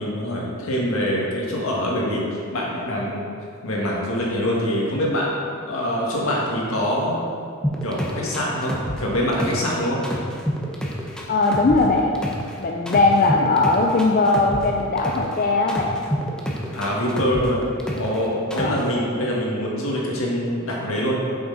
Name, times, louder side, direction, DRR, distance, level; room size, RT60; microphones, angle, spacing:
voice 1, 0.0-3.2 3.6-5.3 5.7-7.2 7.8-10.0 13.1-13.3 16.7-17.6 17.9-21.2, equal, 75° left, -3 dB, 1.7 m, -24 dB
sound 1, 7.6-9.7 10.0-12.5 12.9-15.3 15.7-18.2 18.5-18.9, equal, 5° left, 0.7 m, -28 dB
voice 2, 11.3-12.1 12.6-15.9 18.6-18.8, left 3 dB, 40° left, 0 dB, 0.5 m, -19 dB
8.0 x 6.3 x 4.0 m, 2.3 s
head